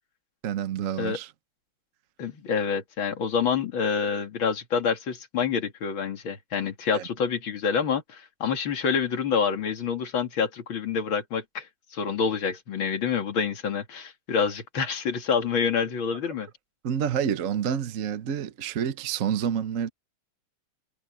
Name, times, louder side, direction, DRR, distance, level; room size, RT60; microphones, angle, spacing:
voice 1, 0.4-1.3 6.9-7.0 16.8-19.9, right 8 dB, 55° right, 0.9 m, -28 dB
voice 2, 2.2-11.7 11.9-16.5, left 6 dB, 65° left, 2.8 m, -27 dB
omnidirectional pair, 2.4 m